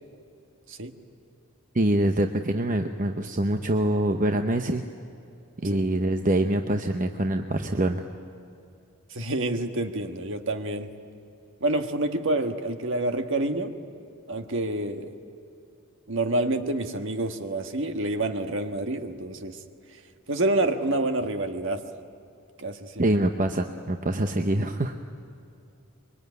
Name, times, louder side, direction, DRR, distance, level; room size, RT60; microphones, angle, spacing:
voice 1, 1.7-4.8 5.6-8.0 23.0-25.0, right 1 dB, 35° right, 6 dB, 0.8 m, -25 dB
voice 2, 9.1-10.9 11.6-13.7 14.3-15.1 16.1-19.6 20.3-21.8 22.6-23.1, right 2 dB, 55° right, 6 dB, 1.5 m, -28 dB
24.5 x 22.5 x 9.5 m, 2.6 s
head